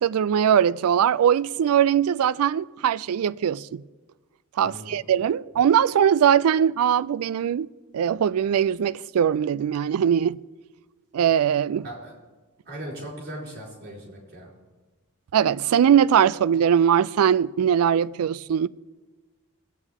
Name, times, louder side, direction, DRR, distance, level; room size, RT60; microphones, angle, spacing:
voice 1, 0.0-3.8 4.6-7.7 7.9-10.4 11.1-11.9 15.3-18.7, right 8 dB, 80° right, 0.3 m, -21 dB
voice 2, 4.6-5.0 11.8-12.1 12.6-14.5, right 1 dB, 45° right, 4.4 m, -38 dB
20.5 x 8.5 x 3.6 m
head